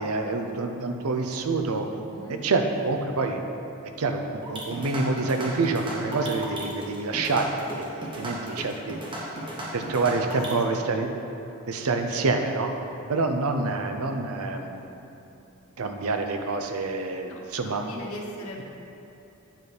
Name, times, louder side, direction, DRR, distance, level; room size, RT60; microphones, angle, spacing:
voice 1, 0.0-1.9 2.4-3.4 4.0-9.0 9.7-11.1 11.7-12.7 13.1-14.9 15.8-17.8, right 3 dB, 75° right, 5 dB, 0.6 m, -27 dB
sound 1, 4.4-10.6, right 1 dB, 20° right, 1.0 m, -35 dB
voice 2, 8.4-8.9 10.1-10.8 17.3-18.7, left 1 dB, 70° left, -1 dB, 1.0 m, -42 dB
9.0 x 4.2 x 5.0 m, 2.8 s
head